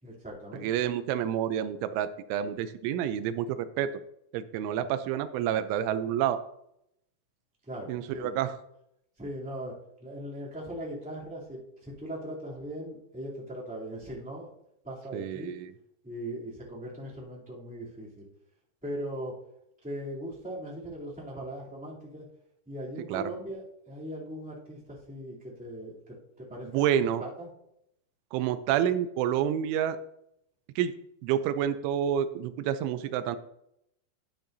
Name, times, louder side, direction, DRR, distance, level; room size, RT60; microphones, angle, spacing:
voice 1, 0.0-0.7 7.7-8.4 9.2-14.5 14.8-15.5 16.0-18.2 18.8-19.4 19.8-22.2 22.6-27.5, right 1 dB, 5° right, -6 dB, 1.4 m, -39 dB
voice 2, 0.5-3.9 4.3-6.4 7.9-8.6 15.1-15.7 23.1-23.2 26.6-27.2 28.3-30.0 30.8-30.9 31.2-33.4, right 10 dB, 85° right, 11 dB, 3.0 m, -29 dB
11.0 x 10.5 x 2.7 m, 0.77 s
omnidirectional pair, 5.4 m